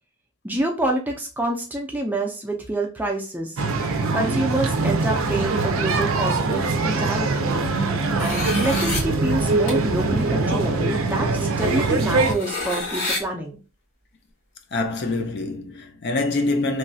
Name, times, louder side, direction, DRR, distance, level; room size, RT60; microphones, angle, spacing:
voice 1, 0.4-3.6 4.1-7.6 8.1-13.6, right 1 dB, 10° right, 0.4 m, -27 dB
sound 1, 3.6-12.3, right 3 dB, 65° right, 0.4 m, -22 dB
sound 2, 8.2-9.0 9.7-9.8 10.8-10.9 11.5-13.2, left 2 dB, 85° left, 1.4 m, -29 dB
voice 2, 14.7-16.8, left 2 dB, 50° left, 0.4 m, -25 dB
3.1 x 2.2 x 2.6 m
head